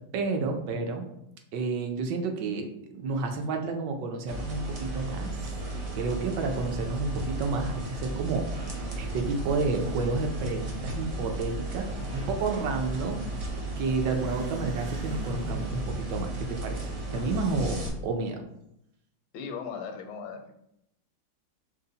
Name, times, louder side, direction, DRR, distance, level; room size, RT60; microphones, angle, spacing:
voice 1, 0.1-1.1 1.5-5.3 5.9-13.2 13.8-18.4, right 3 dB, 70° right, 4 dB, 1.2 m, -30 dB
sound 1, 4.3-17.9, right 2 dB, 55° right, 0.9 m, -35 dB
Motorcycle / Accelerating revving vroom, 8.7-17.6, equal, 90° right, 1.7 m, -44 dB
voice 2, 19.3-20.7, left 6 dB, 80° left, 5 dB, 1.3 m, -38 dB
5.4 x 2.1 x 3.9 m, 0.78 s
omnidirectional pair, 2.2 m